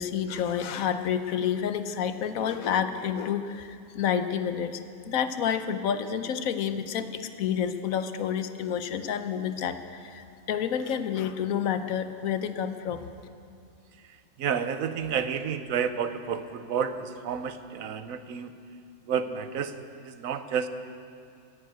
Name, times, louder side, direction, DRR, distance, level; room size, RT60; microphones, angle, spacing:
voice 1, 0.0-4.8 5.0-13.0, left 8 dB, 90° left, 10 dB, 1.2 m, -29 dB
voice 2, 14.1-18.5 19.0-20.7, right 7 dB, 80° right, 10 dB, 1.2 m, -31 dB
14.0 x 10.0 x 9.1 m, 2.4 s
omnidirectional pair, 1.4 m